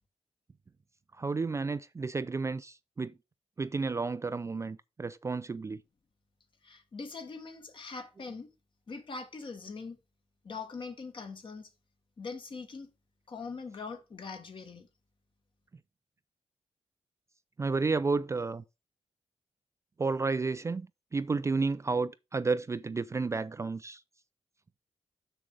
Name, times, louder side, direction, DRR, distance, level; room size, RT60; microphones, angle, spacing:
voice 1, 1.2-3.1 3.6-5.8 17.6-18.6 20.0-24.0, right 4 dB, 25° right, 0.4 m, -31 dB
voice 2, 6.6-8.5 8.9-10.0 10.4-11.7 12.2-12.9 13.3-14.9, left 4 dB, 45° left, 1.8 m, -42 dB
7.1 x 6.6 x 4.7 m
wide cardioid pair, 130°, 12 cm